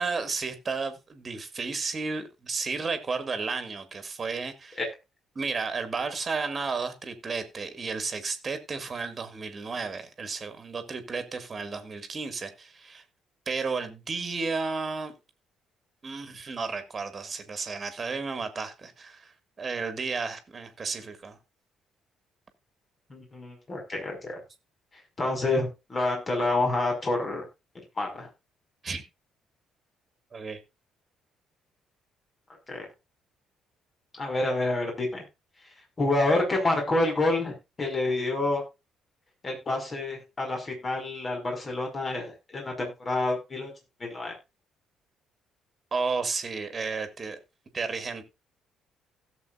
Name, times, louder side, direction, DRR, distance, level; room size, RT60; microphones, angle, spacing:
voice 1, 0.0-4.8 5.4-13.0 13.5-15.1 16.0-21.4 28.8-29.0 30.3-30.6 45.9-47.4 47.7-48.2, right 4 dB, 35° right, 2.2 m, -33 dB
voice 2, 23.1-24.4 25.2-27.4 28.0-28.3 32.7-32.9 34.2-35.2 36.0-38.6 39.4-43.7 44.0-44.3, left 2 dB, 30° left, 5.4 m, -28 dB
16.5 x 7.7 x 2.5 m
figure-of-eight pair, 45°, 0 cm